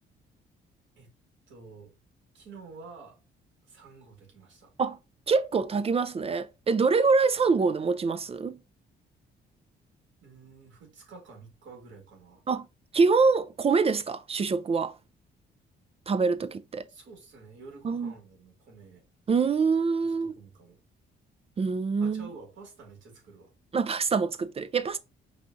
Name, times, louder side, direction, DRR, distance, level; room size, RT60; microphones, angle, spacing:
voice 1, 1.5-1.9 2.3-3.2 3.6-4.7 10.2-12.4 16.9-19.0 20.0-20.8 22.0-23.5, right 4 dB, 75° right, 2.1 m, -49 dB
voice 2, 5.3-8.6 12.5-12.7 12.9-15.0 16.1-16.9 17.8-18.1 19.3-20.3 21.6-22.3 23.7-25.0, right 4 dB, 30° right, 0.4 m, -25 dB
4.9 x 2.5 x 3.7 m
cardioid pair, 90°, 20 cm